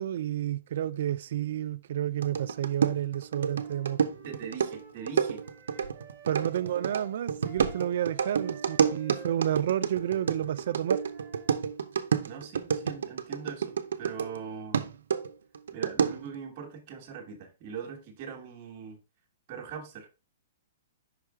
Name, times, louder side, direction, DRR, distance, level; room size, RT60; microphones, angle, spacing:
voice 1, 0.0-4.0 6.2-11.0, right 11 dB, 50° right, 0.4 m, -30 dB
sound 1, 2.2-14.4 14.7-16.4, right 7 dB, 80° right, 0.7 m, -29 dB
Wind instrument woodwind instrument, 3.5-11.5, right 4 dB, 10° right, 1.4 m, -52 dB
voice 2, 4.2-5.5 5.8-5.9 12.3-14.8 15.7-19.0 19.5-20.1, right 6 dB, 30° right, 1.3 m, -41 dB
5.6 x 4.8 x 3.5 m
hypercardioid pair, 175°, 0 cm